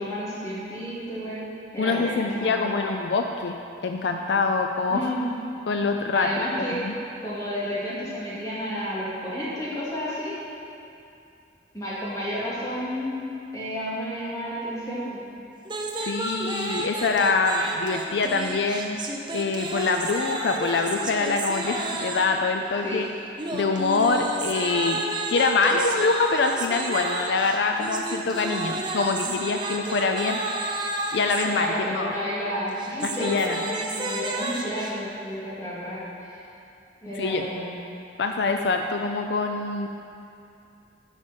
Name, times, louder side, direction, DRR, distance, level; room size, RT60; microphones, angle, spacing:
voice 1, 0.0-1.4 1.7-3.0 4.9-5.3 6.1-6.8 7.2-10.4 11.7-13.3 13.5-15.2 22.8-23.0 25.7-25.8 31.4-36.4 37.0-37.8, equal, 20° left, -9 dB, 2.6 m, -31 dB
voice 2, 1.8-3.6 3.8-5.1 5.7-6.9 16.0-19.0 19.3-23.1 23.5-25.0 25.3-30.8 31.1-32.1 33.0-33.6 37.2-37.4 38.2-39.9, left 4 dB, 65° left, 4 dB, 0.4 m, -25 dB
sound 1, 15.6-22.4 23.4-31.5 32.7-34.9, right 2 dB, 25° right, 0.7 m, -31 dB
10.5 x 5.1 x 7.1 m, 2.6 s
head